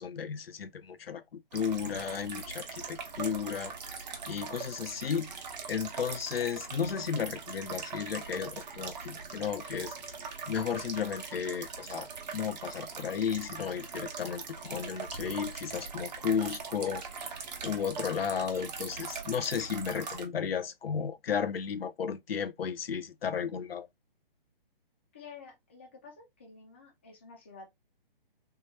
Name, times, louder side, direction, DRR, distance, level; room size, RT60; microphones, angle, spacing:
voice 1, 0.0-3.7 4.3-5.3 5.7-9.9 10.5-12.1 12.3-17.4 17.6-23.9, left 7 dB, 85° left, 0.6 m, -34 dB
sound 1, 1.5-20.3, right 5 dB, 45° right, 0.9 m, -41 dB
voice 2, 25.1-27.7, left 5 dB, 15° left, 0.3 m, -50 dB
3.5 x 2.1 x 2.9 m
hypercardioid pair, 150°, 29 cm